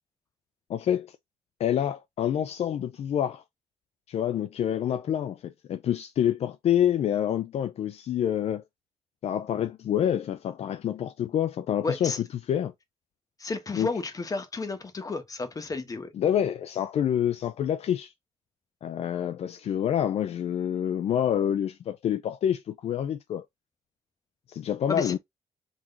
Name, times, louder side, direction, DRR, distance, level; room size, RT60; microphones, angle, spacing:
voice 1, 0.7-1.2 1.6-3.4 4.1-8.6 9.2-12.1 12.5-12.7 13.7-13.9 16.2-18.1 18.8-23.4 24.5-25.2, left 10 dB, 60° left, 0.5 m, -27 dB
voice 2, 11.8-12.2 13.4-16.1 24.9-25.1, left 3 dB, 30° left, 1.2 m, -32 dB
3.9 x 2.9 x 3.8 m
cardioid pair, 105°, 12 cm